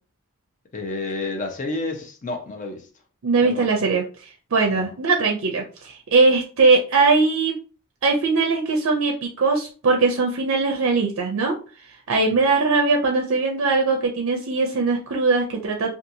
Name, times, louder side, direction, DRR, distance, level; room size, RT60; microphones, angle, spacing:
voice 1, 0.7-2.9 3.4-3.8 4.7-4.9, left 2 dB, 35° left, 0.5 m, -30 dB
voice 2, 3.2-7.5 8.0-11.6 12.1-15.9, right 3 dB, 65° right, 0.5 m, -20 dB
2.7 x 2.3 x 2.7 m
head